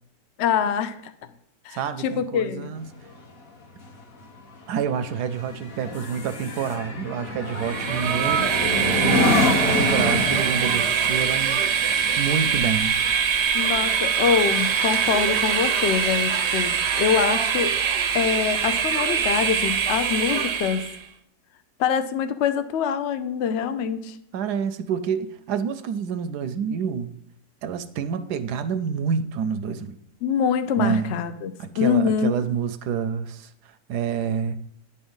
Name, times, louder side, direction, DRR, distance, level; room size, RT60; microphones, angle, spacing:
voice 1, 0.4-1.0 1.6-2.7 8.9-9.5 13.5-17.7 18.1-20.8 21.8-24.2 30.2-32.4, left 7 dB, 85° left, 10 dB, 0.6 m, -24 dB
voice 2, 1.7-2.8 4.7-8.4 9.0-11.6 12.2-12.9 24.3-27.2 27.6-30.0 30.8-31.2 31.6-34.6, right 7 dB, 75° right, 11 dB, 1.1 m, -28 dB
sound 1, 2.8-14.5 14.9-15.2, left 2 dB, 45° left, 0.9 m, -28 dB
Train, 7.5-21.0, right 7 dB, 60° right, 0.7 m, -23 dB
9.6 x 4.4 x 5.4 m, 0.71 s
omnidirectional pair, 1.9 m